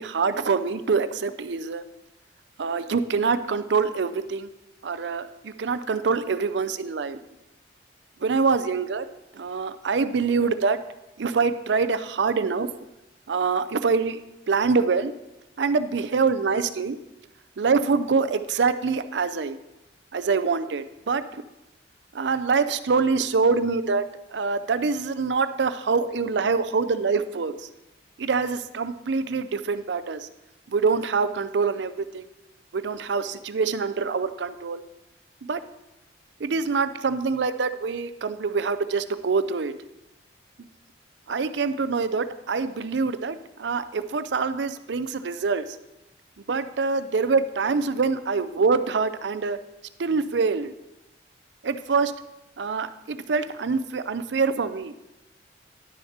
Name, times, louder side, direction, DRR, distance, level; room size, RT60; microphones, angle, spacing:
voice 1, 0.0-1.8 2.6-4.5 4.8-7.2 8.2-9.0 9.3-10.8 11.2-12.7 13.3-14.2 14.5-15.1 15.6-17.0 17.6-19.6 20.1-21.4 22.1-24.0 24.3-27.7 28.2-30.3 30.7-32.2 32.7-34.8 35.4-35.6 36.4-39.7 41.3-45.6 46.5-49.6 50.0-50.7 51.6-52.1 52.6-55.0, right 4 dB, 80° right, 12 dB, 0.5 m, -25 dB
11.0 x 6.5 x 4.3 m, 0.95 s
head